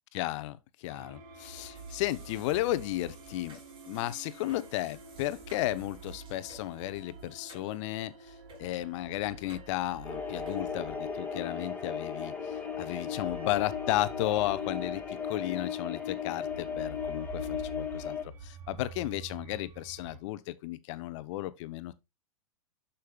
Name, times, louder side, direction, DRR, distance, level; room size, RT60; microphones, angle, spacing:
voice 1, 0.1-3.6 3.9-21.9, left 15 dB, 55° left, 0.8 m, -34 dB
sound 1, 0.9-20.2, right 4 dB, 55° right, 2.0 m, -48 dB
sound 2, 1.7-8.0 8.5-8.6 9.5-9.7 10.4-10.7, right 2 dB, 25° right, 4.0 m, -56 dB
sound 3, 10.0-18.2, left 7 dB, 10° left, 2.3 m, -36 dB
12.0 x 5.6 x 2.4 m
hypercardioid pair, 110°, 19 cm